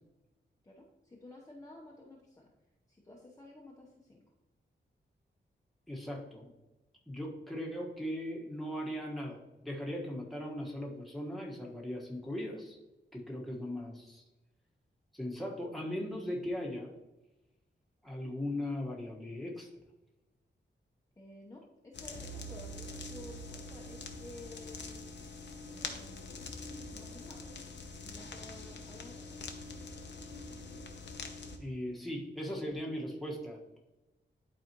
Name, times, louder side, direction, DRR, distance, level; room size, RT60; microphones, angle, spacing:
voice 1, 0.6-2.5 2.9-4.2 21.2-25.0 25.7-26.4 26.9-27.5 28.0-29.4, left 1 dB, 15° left, -4 dB, 0.9 m, -52 dB
voice 2, 5.9-6.5 7.1-12.8 13.1-14.2 15.1-16.9 18.0-19.7 31.6-33.8, left 1 dB, ahead, -3 dB, 1.5 m, -38 dB
sound 1, 21.9-31.6, left 2 dB, 65° left, 0.9 m, -44 dB
11.5 x 4.2 x 3.0 m, 1.0 s
wide cardioid pair, 95°, 20 cm